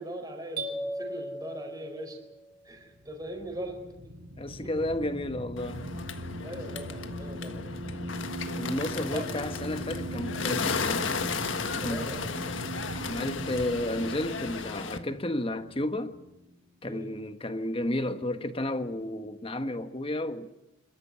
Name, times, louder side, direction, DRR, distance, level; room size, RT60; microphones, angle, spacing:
voice 1, 0.0-2.2 2.6-3.8 4.6-4.7 6.4-7.6 9.1-9.4 11.7-12.8 16.8-17.1, right 1 dB, 20° right, 4.8 m, -40 dB
sound 1, 0.6-2.5, right 1 dB, 55° right, 3.8 m, -37 dB
sound 2, 2.9-16.5, equal, 70° right, 2.0 m, -39 dB
voice 2, 4.4-5.9 8.6-11.1 11.8-12.3 12.9-16.2 16.8-20.6, left 1 dB, 30° left, 1.3 m, -32 dB
Bird, 5.6-15.0, left 5 dB, 80° left, 1.5 m, -35 dB
28.5 x 13.5 x 9.8 m
head